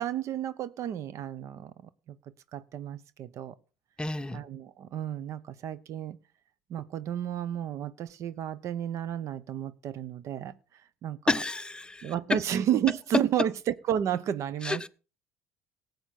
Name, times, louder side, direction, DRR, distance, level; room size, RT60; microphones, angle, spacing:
voice 1, 0.0-2.2 2.5-3.5 4.3-6.2 6.7-10.5 11.0-11.2 12.0-14.9, right 10 dB, 55° right, 0.9 m, -32 dB
voice 2, 4.0-4.4 11.3-12.4 14.6-14.9, left 2 dB, 15° left, 0.7 m, -30 dB
18.0 x 8.1 x 4.3 m
hypercardioid pair, 65°, 6 cm